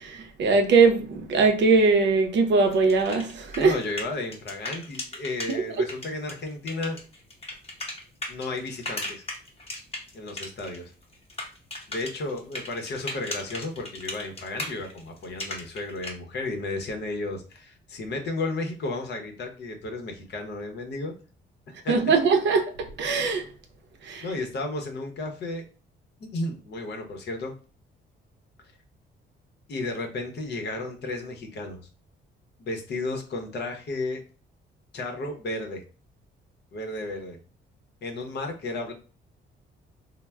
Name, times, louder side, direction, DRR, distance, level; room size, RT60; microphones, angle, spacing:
voice 1, 0.0-3.8 5.5-5.6 21.9-23.4 24.0-24.2, right 4 dB, 65° right, 0.6 m, -21 dB
sound 1, 2.7-5.5 5.9-10.8 11.0-16.1, left 2 dB, 30° left, 0.9 m, -36 dB
voice 2, 3.6-7.0 8.3-9.2 10.1-10.9 11.9-21.1 21.8-22.2 24.2-25.6 26.2-27.5 29.7-31.9 32.6-34.2 34.9-35.8 36.7-37.4 38.0-38.9, left 2 dB, 60° left, 0.7 m, -33 dB
3.1 x 2.0 x 2.2 m
cardioid pair, 90°, 20 cm